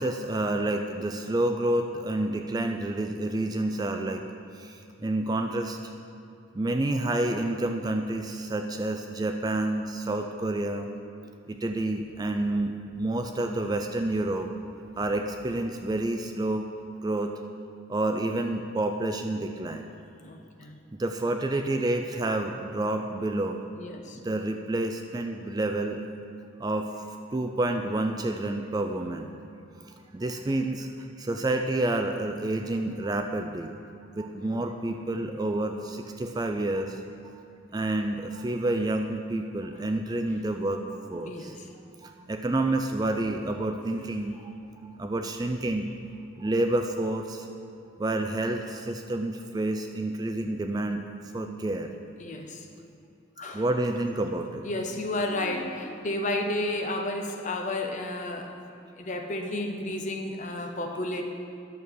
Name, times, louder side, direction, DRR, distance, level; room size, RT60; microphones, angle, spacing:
voice 1, 0.0-4.2 4.5-5.8 6.5-10.9 11.5-14.5 15.0-16.7 17.0-17.4 17.9-19.9 20.9-23.6 24.1-26.0 26.6-27.1 27.3-29.3 29.8-30.9 31.2-33.7 34.2-37.0 37.3-37.4 37.7-40.8 41.1-41.5 42.0-44.6 45.0-45.9 46.4-47.5 48.0-51.1 51.3-51.9 53.5-54.6, right 2 dB, 20° right, 5 dB, 0.3 m, -29 dB
voice 2, 20.2-20.8 23.8-24.2 41.3-41.7 52.2-52.7 53.4-53.7 54.6-58.5 59.0-61.2, left 1 dB, 35° left, 3 dB, 0.7 m, -32 dB
11.0 x 6.8 x 4.7 m, 2.6 s
head